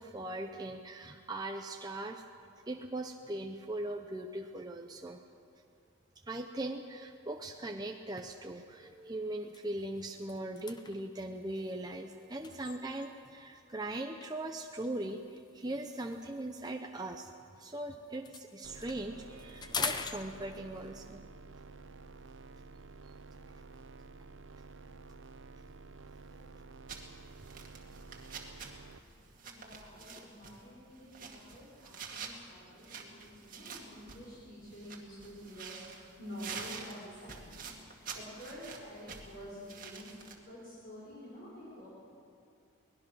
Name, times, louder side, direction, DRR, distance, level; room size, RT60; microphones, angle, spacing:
voice 1, 0.0-2.2 2.7-5.2 6.3-17.3 17.6-21.2 23.0-23.1 26.5-26.6 27.6-27.7 28.6-28.7, right 1 dB, 20° right, 3 dB, 0.7 m, -40 dB
sound 1, 8.5-8.6 8.9-9.1 9.4-13.3 14.2-17.8 18.1-20.9, left 5 dB, 20° left, 0.7 m, -44 dB
sound 2, 18.6-29.0, right 3 dB, 60° right, 0.7 m, -51 dB
sound 3, 26.9-40.3, right 5 dB, 40° right, 2.1 m, -48 dB
voice 2, 29.4-41.9, equal, 45° left, -6 dB, 5.1 m, -49 dB
23.0 x 19.5 x 6.3 m, 2.4 s
head